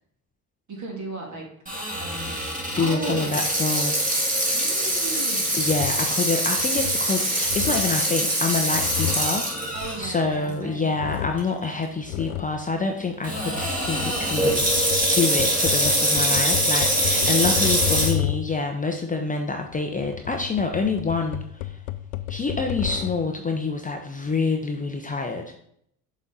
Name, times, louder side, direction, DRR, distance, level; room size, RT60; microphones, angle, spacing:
voice 1, 0.7-1.5 2.0-2.4 2.8-3.4 4.5-5.5 9.7-10.9 17.1-17.9, right 2 dB, 40° right, 0 dB, 2.5 m, -35 dB
Water tap faucet / Sink (filling or washing), 1.7-10.1 10.5-10.6 11.4-11.7 13.2-18.1, right 1 dB, 15° right, 2.4 m, -24 dB
voice 2, 2.8-4.1 5.5-14.6 15.1-21.8 22.3-25.6, left 4 dB, 15° left, 3 dB, 0.7 m, -27 dB
sound 1, 5.6-6.1 6.6-7.1 7.4-8.0 8.5-10.6 10.9-11.5 12.0-12.6 13.2-18.6 19.6-23.3, left 14 dB, 70° left, 0.6 m, -32 dB
7.0 x 4.3 x 3.9 m, 0.69 s
hypercardioid pair, 65°, 46 cm